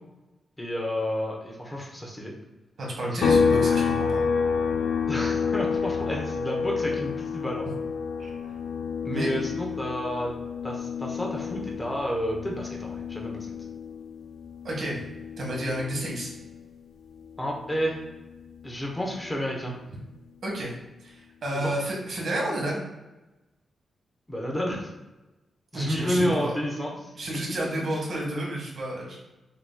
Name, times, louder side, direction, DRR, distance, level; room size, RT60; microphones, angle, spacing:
voice 1, 0.6-2.3 3.1-3.2 5.1-7.6 9.0-10.3 10.6-13.5 17.4-18.0 18.6-19.7 21.6-21.7 24.3-24.9 25.7-27.1, equal, 10° left, -1 dB, 0.9 m, -30 dB
voice 2, 2.8-4.2 8.2-8.3 9.1-9.3 14.6-15.0 15.4-16.3 20.4-20.7 21.0-22.8 25.7-26.5 27.1-29.2, right 1 dB, 60° right, -3 dB, 1.4 m, -30 dB
sound 1, 3.2-16.8 17.1-19.3, left 5 dB, 75° left, 0.5 m, -29 dB
5.8 x 2.9 x 2.2 m, 1.1 s
wide cardioid pair, 130°, 0 cm